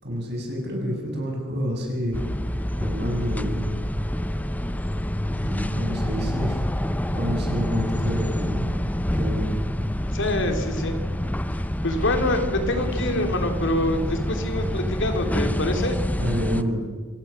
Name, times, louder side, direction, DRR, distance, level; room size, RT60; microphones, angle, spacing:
voice 1, 0.0-2.2 2.8-3.7 5.4-6.6 7.1-8.7 9.1-9.5 16.2-16.8, equal, 55° right, 1 dB, 7.2 m, -28 dB
sound 1, 2.1-16.6, equal, 10° left, 0.7 m, -27 dB
voice 2, 10.1-11.0 11.5-16.0, left 1 dB, 60° left, 5 dB, 3.3 m, -25 dB
26.5 x 17.0 x 6.6 m, 1.5 s
head